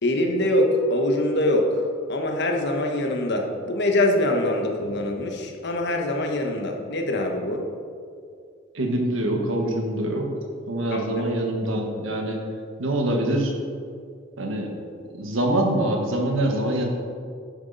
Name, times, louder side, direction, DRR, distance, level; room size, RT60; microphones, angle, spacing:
voice 1, 0.0-7.6 10.9-11.3, left 1 dB, 55° left, 2 dB, 1.2 m, -24 dB
voice 2, 8.7-10.3 10.7-12.4 12.8-13.5 14.4-14.7 15.1-16.9, right 1 dB, 70° right, 2 dB, 1.4 m, -24 dB
11.0 x 7.3 x 4.1 m, 2.3 s
head